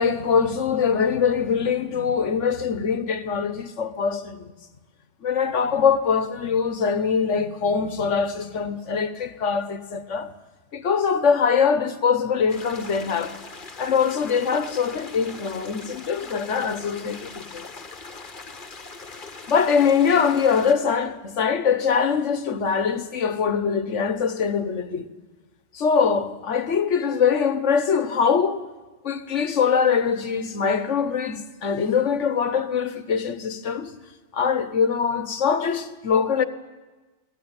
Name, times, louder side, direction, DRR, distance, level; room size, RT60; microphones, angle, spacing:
voice 1, 0.0-4.5 5.2-10.3 10.7-13.4 13.8-17.6 19.5-25.1 25.7-28.6 29.0-33.9 34.3-36.4, left 6 dB, 80° left, 1.5 m, -23 dB
sound 1, 12.5-20.7, left 3 dB, 45° left, 1.5 m, -41 dB
24.5 x 16.5 x 9.0 m
omnidirectional pair, 1.2 m